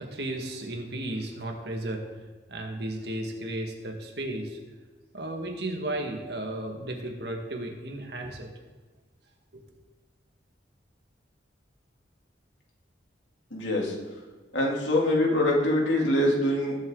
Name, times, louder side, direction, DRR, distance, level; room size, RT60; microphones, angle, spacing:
voice 1, 0.0-2.1 2.5-4.6 5.1-8.5 9.5-9.6, right 1 dB, 65° right, 2 dB, 2.0 m, -34 dB
voice 2, 13.5-13.9 14.5-16.8, left 1 dB, 85° left, -2 dB, 3.1 m, -24 dB
20.0 x 8.0 x 4.0 m, 1.4 s
head